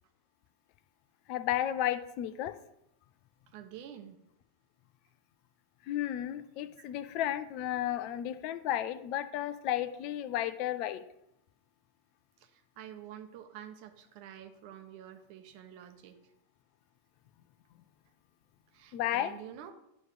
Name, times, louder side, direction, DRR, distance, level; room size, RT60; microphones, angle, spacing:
voice 1, 1.3-2.5 5.9-11.0 18.9-19.3, left 12 dB, 45° left, 13 dB, 0.5 m, -33 dB
voice 2, 3.5-4.2 6.8-6.9 12.4-16.2 18.7-19.7, right 10 dB, 45° right, 6 dB, 1.0 m, -48 dB
9.4 x 3.2 x 6.6 m, 0.80 s
figure-of-eight pair, 90°, 0 cm